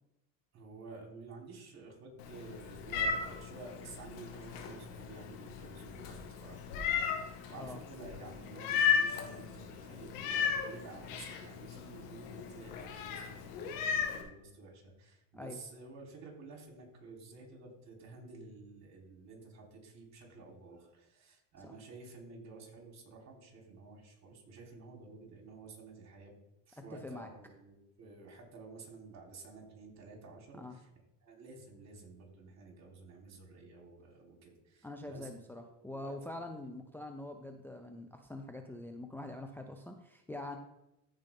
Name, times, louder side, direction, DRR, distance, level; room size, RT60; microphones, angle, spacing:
voice 1, 0.5-26.3 26.7-30.9 31.2-35.3 35.6-36.4, right 3 dB, 45° right, 0 dB, 3.7 m, -51 dB
Meow, 2.2-14.2, left 7 dB, 90° left, 1.7 m, -36 dB
voice 2, 26.9-27.3 30.5-30.8 34.8-40.6, left 2 dB, 5° left, 4 dB, 0.7 m, -44 dB
14.5 x 5.3 x 3.6 m, 0.87 s
supercardioid pair, 100°, 38 cm